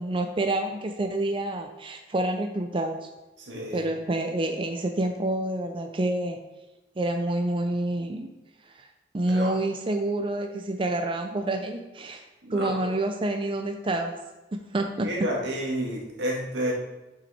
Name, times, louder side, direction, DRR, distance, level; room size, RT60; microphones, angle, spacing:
voice 1, 0.0-3.0 3.7-6.4 7.0-8.3 8.7-8.9 9.1-12.2 12.5-14.1 14.5-15.3, right 1 dB, 30° right, 5 dB, 0.5 m, -28 dB
voice 2, 3.4-3.8 9.3-9.6 12.4-12.9 15.0-16.7, right 1 dB, 90° right, -1 dB, 1.9 m, -30 dB
7.5 x 5.7 x 4.2 m, 1.1 s
head